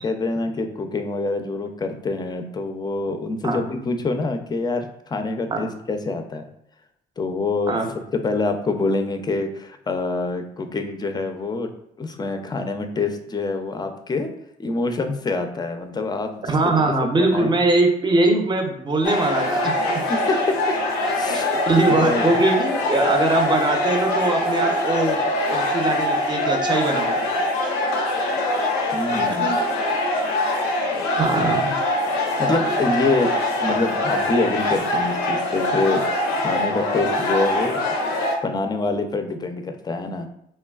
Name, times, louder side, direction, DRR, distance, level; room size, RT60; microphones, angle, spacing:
voice 1, 0.0-6.4 7.2-7.8 8.1-11.7 12.0-14.3 14.6-17.6 20.1-20.6 21.1-21.6 21.9-22.4 28.9-29.5 32.4-33.3 33.6-36.0 36.4-37.8 38.4-40.3, left 3 dB, 25° left, 6 dB, 0.4 m, -26 dB
voice 2, 16.5-20.0 21.3-25.2 25.5-27.2 29.4-29.6 31.2-31.7, right 2 dB, 25° right, 3 dB, 0.6 m, -21 dB
sound 1, 19.0-38.4, left 1 dB, 85° left, 0.4 m, -23 dB
3.1 x 2.2 x 2.3 m, 0.77 s
hypercardioid pair, 60°, 18 cm